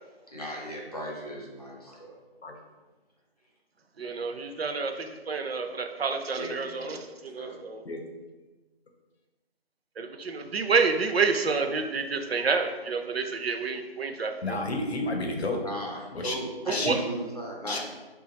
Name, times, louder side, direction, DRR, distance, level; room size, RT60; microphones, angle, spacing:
voice 1, 0.3-2.2 6.3-7.5 15.6-17.8, right 1 dB, 40° left, -3 dB, 0.6 m, -37 dB
voice 2, 4.0-7.8 10.0-14.6 16.7-17.0, right 4 dB, 75° right, 5 dB, 0.5 m, -29 dB
voice 3, 14.4-15.6 16.1-16.3 16.7-17.0 17.7-17.8, left 2 dB, 90° left, 3 dB, 0.7 m, -30 dB
2.8 x 2.3 x 4.0 m, 1.2 s
figure-of-eight pair, 180°, 31 cm